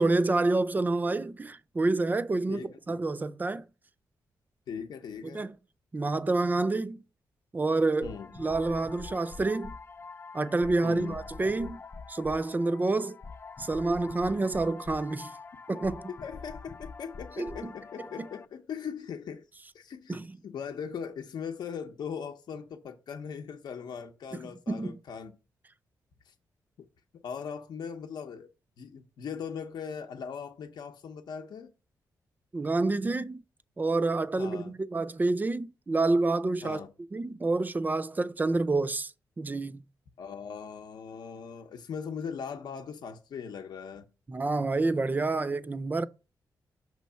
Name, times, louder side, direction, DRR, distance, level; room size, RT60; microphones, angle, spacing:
voice 1, 0.0-3.6 5.3-5.6 5.9-7.0 7.5-9.7 10.3-11.8 12.1-13.2 13.6-15.3 15.7-16.1 17.4-17.7 18.2-18.3 20.1-20.4 24.7-25.0 32.5-33.4 33.8-36.8 37.1-39.1 39.4-39.8 44.3-46.0, right 3 dB, 25° right, 0.4 m, -28 dB
voice 2, 2.5-3.0 4.7-5.4 8.0-8.3 10.8-11.2 16.2-19.4 19.7-20.2 20.4-25.3 26.3-26.4 26.8-26.9 27.2-28.5 28.8-31.7 34.4-34.7 36.6-36.9 40.2-44.1, left 7 dB, 75° left, 0.7 m, -39 dB
sound 1, 8.0-18.4, left 4 dB, 35° left, 0.5 m, -45 dB
6.1 x 3.1 x 5.6 m
cardioid pair, 90°, 7 cm